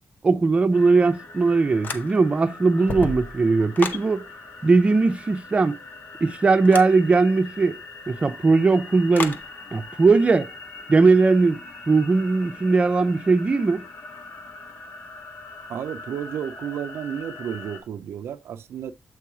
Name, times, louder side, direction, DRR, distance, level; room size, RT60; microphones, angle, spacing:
voice 1, 0.2-4.2 4.6-5.8 6.2-7.8 8.1-9.4 9.7-10.5 10.9-11.6 11.9-13.8, right 3 dB, 30° right, 0.5 m, -19 dB
sound 1, 0.7-17.8, left 3 dB, 85° left, 1.5 m, -42 dB
sound 2, 1.8-2.4 2.7-4.1 6.6-7.0 9.1-9.5, left 4 dB, 50° left, 0.7 m, -31 dB
voice 2, 15.7-18.9, right 9 dB, 90° right, 0.3 m, -32 dB
7.7 x 3.0 x 4.7 m
wide cardioid pair, 130°, 4 cm